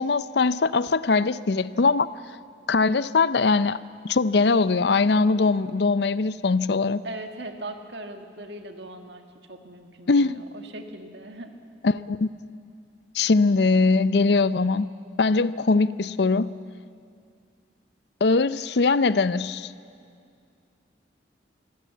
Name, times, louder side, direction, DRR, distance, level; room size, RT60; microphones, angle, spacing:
voice 1, 0.0-2.1 2.7-3.8 4.0-7.0 10.1-10.4 11.8-12.3 13.1-14.9 15.2-16.5 18.2-19.7, left 4 dB, 60° left, 16 dB, 0.5 m, -21 dB
voice 2, 7.0-9.2 9.5-11.5, right 1 dB, 70° right, 5 dB, 1.8 m, -39 dB
25.0 x 16.0 x 8.4 m, 2.3 s
head